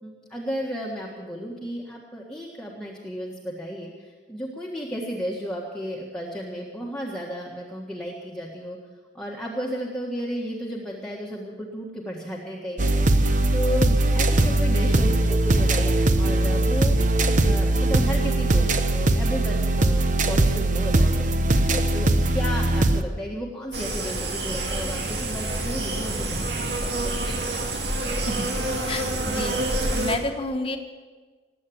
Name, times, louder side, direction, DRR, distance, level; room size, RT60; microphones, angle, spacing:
voice 1, 0.0-8.8 9.1-17.0 17.4-21.3 21.7-27.4, equal, 5° left, -4 dB, 1.6 m, -33 dB
sound 1, 12.8-23.0, right 2 dB, 45° right, 0.9 m, -20 dB
sound 2, 23.7-30.2, right 2 dB, 65° right, 2.5 m, -27 dB
voice 2, 28.9-29.6 29.9-30.8, left 1 dB, 30° left, 4 dB, 1.4 m, -29 dB
19.5 x 8.5 x 8.6 m, 1.4 s
head